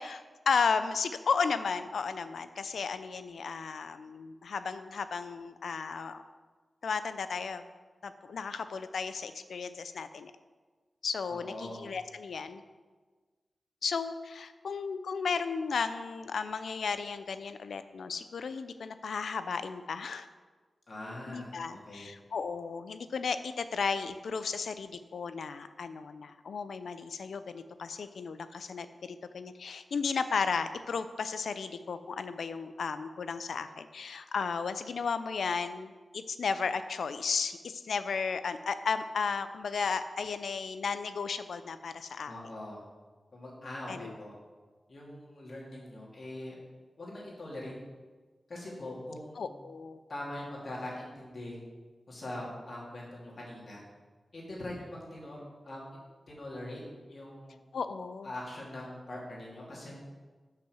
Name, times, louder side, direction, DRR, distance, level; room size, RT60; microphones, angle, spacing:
voice 1, 0.0-6.2 6.8-7.6 8.0-10.3 11.0-12.6 13.8-20.3 21.3-42.3 43.9-44.1 49.4-50.0 57.7-58.3, left 5 dB, 90° left, 11 dB, 0.4 m, -34 dB
voice 2, 11.3-11.8 20.9-22.1 42.2-42.8 43.3-44.3 44.9-46.6 47.0-47.7 48.5-49.5 50.1-51.6 52.1-53.8 54.3-55.8 56.3-56.8 57.1-57.6 58.2-60.0, left 1 dB, 50° left, -5 dB, 2.5 m, -42 dB
6.4 x 5.7 x 6.2 m, 1.4 s
wide cardioid pair, 110°, 0 cm